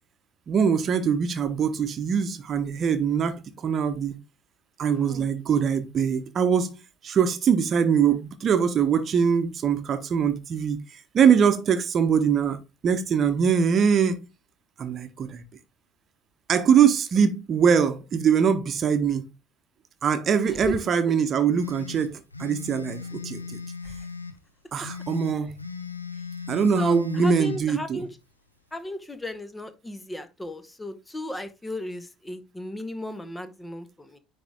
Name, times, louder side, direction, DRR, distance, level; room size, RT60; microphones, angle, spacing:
voice 1, 0.5-4.2 4.8-6.8 7.0-10.8 11.1-12.6 12.8-14.2 14.8-15.4 16.5-19.3 20.0-23.6 24.7-25.5 26.5-28.1, right 7 dB, 40° right, 1.0 m, -22 dB
voice 2, 4.9-5.3 20.6-20.8 23.8-24.0 26.8-28.1 28.7-34.2, left 1 dB, 10° left, 0.9 m, -35 dB
sound 1, 21.6-24.4 24.8-27.6, left 5 dB, 90° left, 0.6 m, -37 dB
10.0 x 3.5 x 3.6 m
figure-of-eight pair, 60°, 0 cm